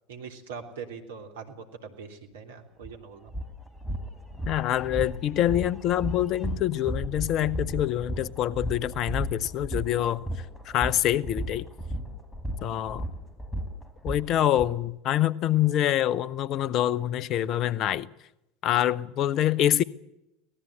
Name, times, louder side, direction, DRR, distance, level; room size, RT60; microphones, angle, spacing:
voice 1, 0.1-3.3, right 6 dB, 70° right, 3.2 m, -42 dB
sound 1, 2.8-2.9 3.3-14.7, equal, 10° left, 3.9 m, -34 dB
voice 2, 4.5-10.2 10.6-11.7 12.6-13.1 14.0-18.1 18.6-19.8, left 12 dB, 45° left, 0.8 m, -25 dB
24.5 x 18.5 x 7.8 m
figure-of-eight pair, 75°, 0 cm